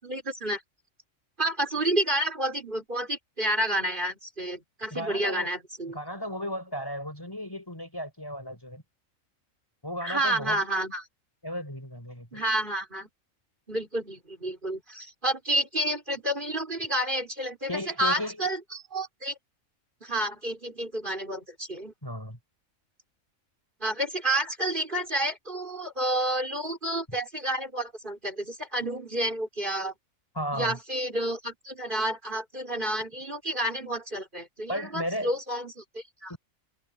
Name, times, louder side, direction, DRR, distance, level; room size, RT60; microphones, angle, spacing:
voice 1, 0.0-0.6 1.4-6.0 10.0-11.1 12.3-13.1 13.7-19.4 20.0-21.9 23.8-29.9 30.5-36.3, right 1 dB, 40° right, 5.4 m, -30 dB
voice 2, 4.9-5.5 5.9-8.8 9.8-10.6 11.4-12.4 17.7-18.4 22.0-22.4 30.3-30.8 34.7-35.3 36.3-36.4, equal, 15° left, 4.7 m, -34 dB
omnidirectional pair, 1.4 m